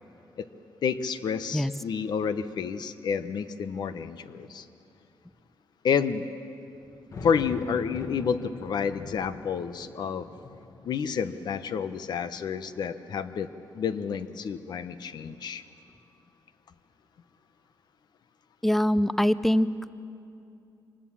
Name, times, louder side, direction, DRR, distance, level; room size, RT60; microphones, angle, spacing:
voice 1, 0.8-4.7 5.8-6.2 7.2-10.3 10.8-13.5 13.7-15.6, left 6 dB, 65° left, 11 dB, 1.0 m, -29 dB
sound 1, 3.5-3.6 4.4-4.5 5.0-5.1 6.7-13.1 13.6-14.5, left 4 dB, 45° left, 1.2 m, -44 dB
voice 2, 18.6-19.7, equal, 5° left, 16 dB, 0.5 m, -23 dB
24.5 x 20.0 x 7.4 m, 2.6 s
cardioid pair, 120°, 8 cm